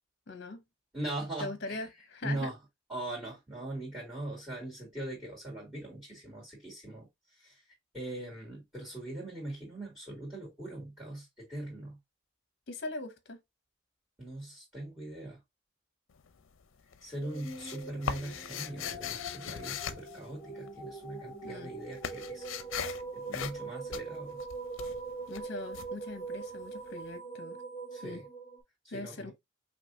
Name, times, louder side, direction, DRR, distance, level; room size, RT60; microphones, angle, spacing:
voice 1, 0.3-0.6 1.4-2.5 12.7-13.4 21.4-21.7 25.3-27.6 28.0-28.2 28.9-29.3, left 3 dB, 55° left, 0.8 m, -41 dB
voice 2, 0.9-1.9 2.2-2.6 2.9-7.6 7.9-12.0 14.2-15.4 17.0-22.4 22.7-24.4 27.9-28.2 28.8-29.3, right 1 dB, 10° right, 2.1 m, -41 dB
sound 1, 16.1-16.6 16.9-21.0 21.2-26.8, left 7 dB, 80° left, 0.5 m, -40 dB
sound 2, 17.2-28.6, right 3 dB, 25° left, 1.3 m, -42 dB
5.3 x 2.7 x 2.6 m
head